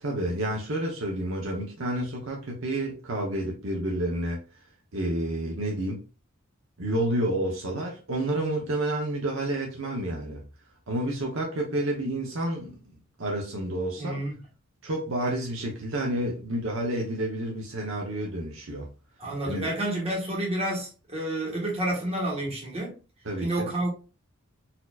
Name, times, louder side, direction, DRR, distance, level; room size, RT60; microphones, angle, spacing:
voice 1, 0.0-4.4 4.9-6.0 6.8-10.4 10.9-12.8 13.2-14.2 14.8-18.9 19.5-19.7 23.2-23.7, right 1 dB, 65° right, 0.8 m, -29 dB
voice 2, 14.0-14.3 19.2-23.0 23.4-23.9, right 1 dB, 30° right, 1.4 m, -29 dB
4.2 x 2.8 x 2.4 m
head